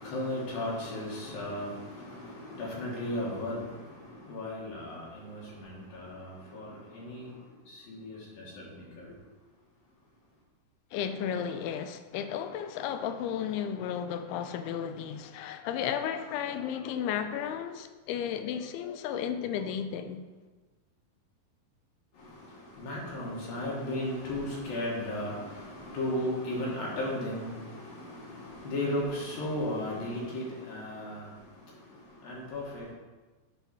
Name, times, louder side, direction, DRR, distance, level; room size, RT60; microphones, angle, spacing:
voice 1, 0.0-9.2 22.1-32.9, left 1 dB, 70° left, 3.0 m, -36 dB
voice 2, 10.9-20.2, left 8 dB, 85° left, 2.5 m, -33 dB
8.3 x 4.0 x 5.6 m
omnidirectional pair, 4.5 m